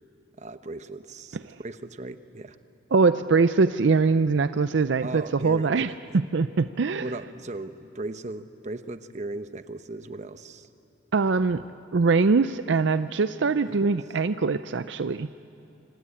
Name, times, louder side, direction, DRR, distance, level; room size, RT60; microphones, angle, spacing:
voice 1, 0.4-2.6 5.0-6.0 7.0-10.7 13.7-13.9, right 2 dB, 40° right, 10 dB, 1.0 m, -37 dB
voice 2, 2.9-7.0 11.1-11.6 11.9-15.3, right 4 dB, 65° right, 12 dB, 0.5 m, -22 dB
26.0 x 25.5 x 8.7 m, 2.9 s
head